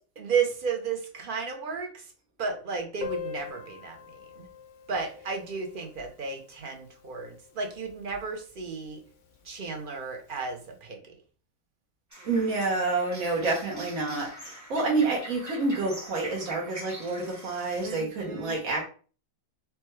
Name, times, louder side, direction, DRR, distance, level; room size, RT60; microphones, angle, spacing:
voice 1, 0.2-2.1 2.4-4.5 4.9-9.0 9.4-11.0 17.8-18.5, right 5 dB, 50° right, 3 dB, 0.7 m, -33 dB
Piano, 3.0-8.4 8.6-8.7 8.9-9.1 9.4-9.5 10.3-10.4, left 6 dB, 70° left, 0.9 m, -43 dB
sound 1, 12.1-17.9, right 1 dB, 15° right, 0.8 m, -44 dB
voice 2, 12.2-18.8, right 3 dB, 75° right, -1 dB, 1.3 m, -28 dB
4.5 x 2.2 x 3.0 m, 0.39 s
omnidirectional pair, 1.5 m